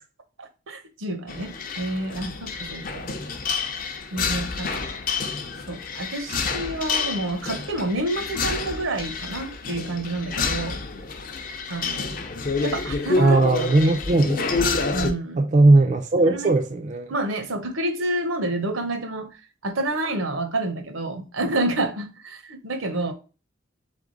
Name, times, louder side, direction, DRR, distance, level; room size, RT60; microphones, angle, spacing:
voice 1, 0.4-3.2 4.1-4.8 5.7-10.8 11.7-12.2 12.6-13.4 13.8-14.0 14.9-15.5 16.3-16.5 17.1-19.3 19.6-23.1, right 1 dB, 85° right, 0.9 m, -29 dB
sound 1, 1.3-15.1, left 4 dB, 45° left, 0.5 m, -28 dB
voice 2, 13.2-14.4 15.4-17.1, right 2 dB, 35° right, 0.4 m, -18 dB
3.7 x 3.5 x 3.8 m
head